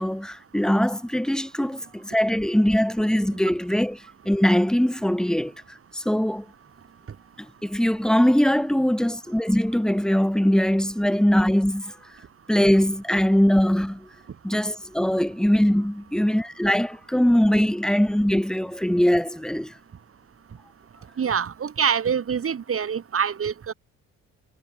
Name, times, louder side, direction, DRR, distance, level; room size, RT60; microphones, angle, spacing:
voice 1, 0.0-4.0 4.2-5.5 5.9-6.5 7.4-11.9 12.5-14.1 14.4-19.7, equal, ahead, 2.3 m, -21 dB
voice 2, 21.2-23.7, right 7 dB, 45° right, 4.3 m, -25 dB
cardioid pair, 90°, 30 cm